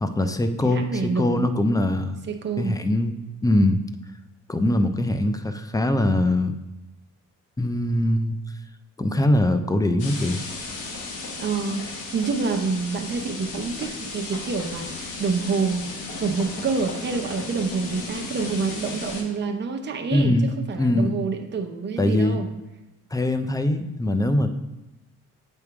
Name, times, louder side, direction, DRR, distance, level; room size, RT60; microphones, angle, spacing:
voice 1, 0.0-2.1 2.6-3.2 3.4-3.8 4.5-6.5 7.6-8.4 9.0-10.4 20.1-20.5 20.8-21.2 22.0-22.4 23.1-24.5, left 1 dB, 10° left, 9 dB, 0.5 m, -22 dB
voice 2, 0.6-1.5 2.3-2.8 11.4-15.9 16.2-22.5, right 4 dB, 35° right, 4 dB, 0.8 m, -27 dB
sound 1, 10.0-19.2, left 3 dB, 80° left, 1.3 m, -35 dB
7.8 x 3.6 x 4.7 m, 0.97 s
cardioid pair, 90°, 30 cm